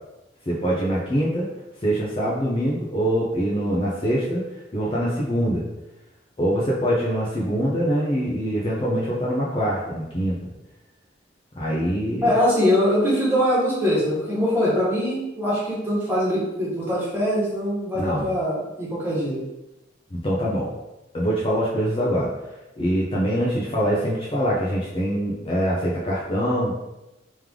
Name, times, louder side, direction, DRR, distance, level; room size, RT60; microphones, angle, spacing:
voice 1, 0.5-1.5 1.8-4.4 4.7-5.6 6.4-10.4 11.6-12.3 17.9-18.3 20.1-20.7 21.1-22.3 22.8-26.7, equal, 30° left, -5 dB, 0.6 m, -24 dB
voice 2, 12.2-19.4, equal, 10° right, -8 dB, 1.5 m, -22 dB
3.4 x 3.1 x 3.6 m, 0.98 s
head